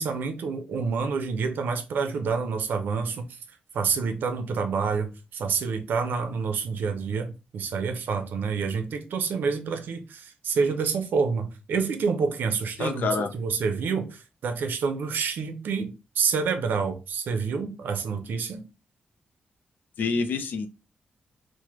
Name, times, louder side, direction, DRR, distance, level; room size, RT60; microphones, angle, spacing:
voice 1, 0.0-3.2 3.7-18.6, right 5 dB, 85° right, 0.6 m, -28 dB
voice 2, 12.8-13.3 20.0-20.7, left 4 dB, 75° left, 0.5 m, -27 dB
3.3 x 2.1 x 2.9 m
wide cardioid pair, 135°, 3 cm